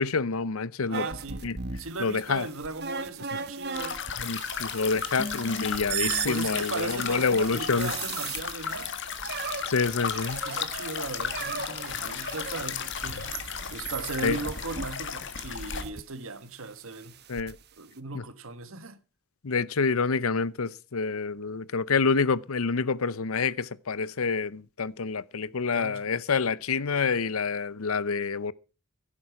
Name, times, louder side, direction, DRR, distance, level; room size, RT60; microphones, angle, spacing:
voice 1, 0.0-1.1 1.4-1.6 2.0-2.5 4.2-7.9 9.7-10.4 14.2-14.4 17.3-17.6 18.1-18.2 19.4-28.5, left 4 dB, 75° left, 0.7 m, -27 dB
sound 1, 0.9-16.0 16.9-17.5, right 6 dB, 50° right, 1.1 m, -38 dB
voice 2, 0.9-1.4 1.8-4.0 6.2-8.9 10.4-13.3 13.7-17.1 17.8-19.0 25.7-26.1, right 3 dB, 65° right, 1.4 m, -37 dB
sound 2, 3.7-15.8, left 7 dB, 55° left, 1.6 m, -35 dB
sound 3, 5.2-8.5 8.7-8.8, left 3 dB, 30° left, 0.6 m, -42 dB
16.0 x 8.6 x 5.9 m
head